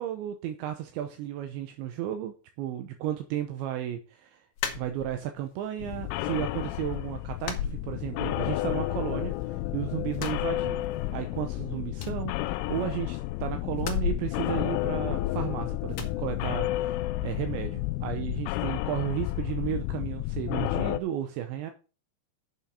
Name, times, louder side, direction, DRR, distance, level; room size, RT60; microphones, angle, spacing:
voice 1, 0.0-4.4 4.7-10.8 11.1-21.7, right 11 dB, 80° right, 7 dB, 2.8 m, -34 dB
sound 1, 4.6-5.5 5.9-6.6 6.8-7.0 7.4-8.5 8.8-9.7 10.1-11.2 11.5-11.6 11.9-13.1 13.8-15.4 15.9-16.2, left 8 dB, 65° left, 2.2 m, -36 dB
sound 2, 5.8-21.0, left 16 dB, 80° left, 3.0 m, -31 dB
8.3 x 7.1 x 6.4 m, 0.33 s
omnidirectional pair, 5.8 m